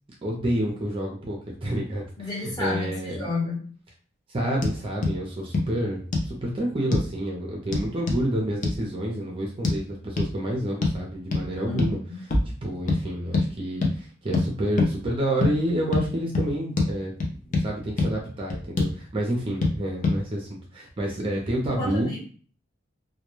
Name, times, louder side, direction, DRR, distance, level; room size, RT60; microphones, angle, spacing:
voice 1, 0.2-3.3 4.3-12.0 12.6-17.1 17.5-22.1, right 1 dB, 30° right, -1 dB, 0.5 m, -29 dB
voice 2, 2.2-3.7 11.7-12.2 19.5-19.6 21.7-22.2, left 3 dB, 20° left, -4 dB, 0.9 m, -31 dB
sound 1, 4.6-4.8 5.0-5.2 5.5-5.7 6.1-6.3 6.9-7.1 7.7-8.2 8.6-8.8 9.6-9.8 10.2-10.3 10.8-11.0 11.3-11.5 11.8-12.0 12.3-12.5 12.9-13.0 13.3-13.5 13.8-13.9 14.3-14.5 14.8-14.9 15.4-15.5 15.9-16.1 16.3-16.5 16.8-16.9 17.2-17.7 18.0-18.1 18.5-18.9 19.6-19.7 20.0-20.2, left 3 dB, 40° left, 0.5 m, -23 dB
2.2 x 2.1 x 2.9 m, 0.43 s
head